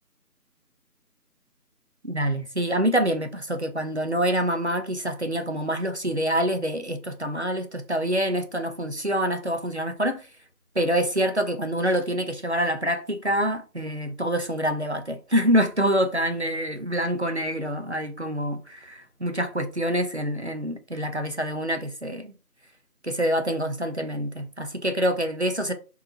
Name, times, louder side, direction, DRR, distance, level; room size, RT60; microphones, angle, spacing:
voice 1, 2.0-10.3 10.8-22.3 23.0-25.7, equal, 45° right, 0.6 m, -26 dB
3.8 x 2.8 x 4.1 m
figure-of-eight pair, 170°, 47 cm